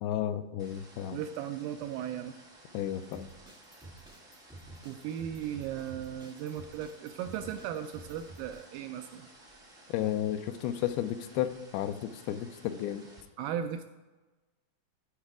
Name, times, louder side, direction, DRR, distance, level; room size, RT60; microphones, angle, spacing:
voice 1, 0.0-1.2 2.7-3.3 9.9-13.0, left 11 dB, 80° left, 10 dB, 2.4 m, -33 dB
sound 1, 0.6-13.2, right 1 dB, 55° right, 0.5 m, -56 dB
voice 2, 1.1-2.3 4.8-9.3 13.4-13.8, right 9 dB, 85° right, 7 dB, 2.1 m, -37 dB
sound 2, 3.1-8.6, right 2 dB, 5° right, 0.5 m, -51 dB
14.0 x 4.9 x 4.8 m, 1.2 s
omnidirectional pair, 4.4 m